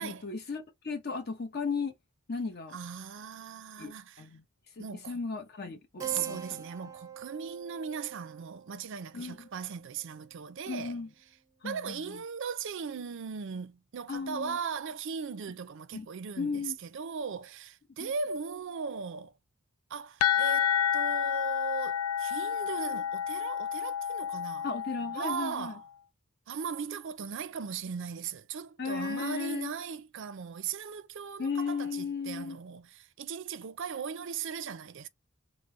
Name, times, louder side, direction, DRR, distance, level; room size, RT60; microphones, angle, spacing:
voice 1, 0.0-1.9 2.3-2.8 3.8-4.4 4.8-6.6 9.1-9.5 10.7-11.1 11.6-12.0 14.1-14.6 15.9-16.1 16.4-16.8 18.0-18.1 24.6-25.7 28.8-29.7 31.4-32.6, left 5 dB, 50° left, 0.8 m, -35 dB
voice 2, 2.7-4.3 4.8-5.2 6.0-11.0 11.6-19.3 19.9-24.7 25.1-25.8 26.5-35.1, right 6 dB, 60° right, 0.5 m, -38 dB
Keyboard (musical), 6.0-11.0, right 9 dB, 15° right, 0.5 m, -45 dB
sound 1, 20.2-25.8, left 9 dB, 90° left, 0.4 m, -30 dB
5.2 x 2.0 x 3.2 m
head